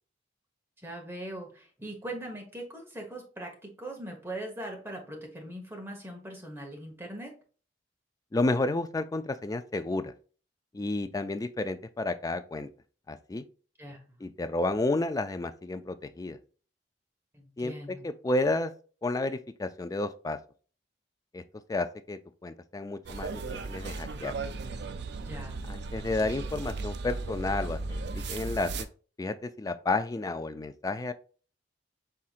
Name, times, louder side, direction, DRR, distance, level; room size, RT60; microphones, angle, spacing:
voice 1, 0.8-7.3 13.8-14.0 17.3-18.0 25.3-25.6, right 1 dB, 15° right, 1.2 m, -40 dB
voice 2, 8.3-10.1 10.7-12.7 13.1-13.4 14.2-16.4 17.6-18.7 19.0-20.4 21.3-21.4 21.7-23.3 23.6-24.3 25.7-28.9 29.2-31.1, left 2 dB, 20° left, 0.3 m, -31 dB
sound 1, 23.1-28.9, right 3 dB, 65° right, 0.5 m, -36 dB
5.6 x 3.7 x 2.4 m
head